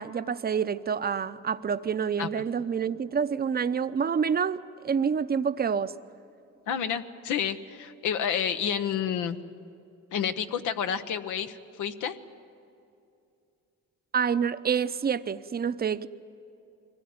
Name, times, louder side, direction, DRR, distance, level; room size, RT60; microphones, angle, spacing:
voice 1, 0.0-4.6 4.8-5.9 14.1-16.1, right 6 dB, 30° right, 12 dB, 0.7 m, -27 dB
voice 2, 6.7-9.4 10.1-12.2, left 8 dB, 85° left, 8 dB, 1.0 m, -30 dB
23.0 x 17.0 x 9.5 m, 2.6 s
cardioid pair, 90°, 30 cm